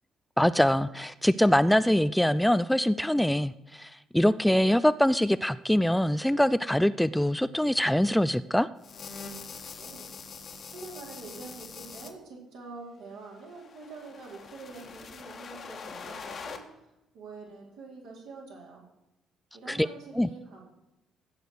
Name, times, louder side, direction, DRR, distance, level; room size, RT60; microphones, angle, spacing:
voice 1, 0.4-8.7 19.7-19.9 20.1-20.3, left 1 dB, 5° left, 15 dB, 0.4 m, -24 dB
sound 1, 8.8-12.1 13.2-16.6, left 5 dB, 45° left, 1.6 m, -43 dB
voice 2, 9.8-10.1 10.6-16.6 17.1-18.8 19.5-20.6, right 3 dB, 65° right, -2 dB, 4.2 m, -45 dB
15.5 x 6.7 x 7.9 m, 0.95 s
figure-of-eight pair, 45°, 0 cm